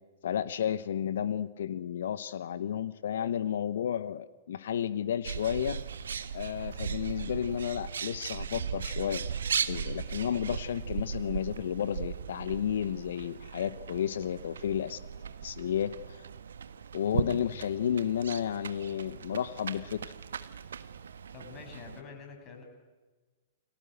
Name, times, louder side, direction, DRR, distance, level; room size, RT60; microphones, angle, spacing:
voice 1, 0.2-5.8 6.3-9.2 9.7-15.0 15.4-16.2 16.9-20.1, left 9 dB, 60° left, 15 dB, 0.9 m, -32 dB
Bird, 5.2-22.0, right 7 dB, 70° right, 1.4 m, -38 dB
voice 2, 21.3-22.6, left 5 dB, 25° left, 2 dB, 7.9 m, -46 dB
29.5 x 23.5 x 8.0 m, 1.3 s
figure-of-eight pair, 105°, 0 cm